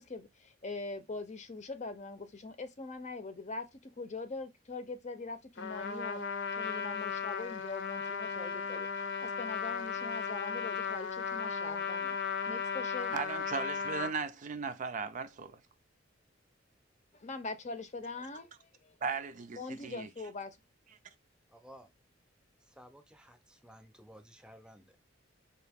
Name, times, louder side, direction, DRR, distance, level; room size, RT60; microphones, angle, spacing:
voice 1, 0.0-6.2 6.5-12.2 12.5-13.2 17.1-19.0 19.5-20.6, left 3 dB, 40° left, 0.7 m, -42 dB
Trumpet, 5.6-14.1, left 6 dB, 65° left, 0.8 m, -36 dB
voice 2, 13.1-15.6 19.0-20.1, right 5 dB, 40° right, 0.4 m, -37 dB
voice 3, 21.5-21.9 22.8-25.1, equal, 5° right, 0.7 m, -55 dB
4.4 x 2.8 x 3.5 m
head